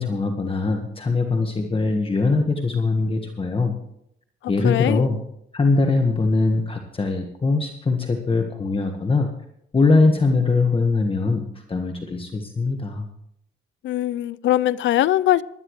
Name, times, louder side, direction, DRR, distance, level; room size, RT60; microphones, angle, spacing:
voice 1, 0.0-3.7 4.5-5.2 5.5-9.3 9.7-13.1, left 3 dB, 25° left, 1.5 m, -21 dB
voice 2, 4.4-5.0 13.8-15.4, left 13 dB, 70° left, 0.5 m, -21 dB
19.5 x 12.5 x 3.2 m
cardioid pair, 90°, 20 cm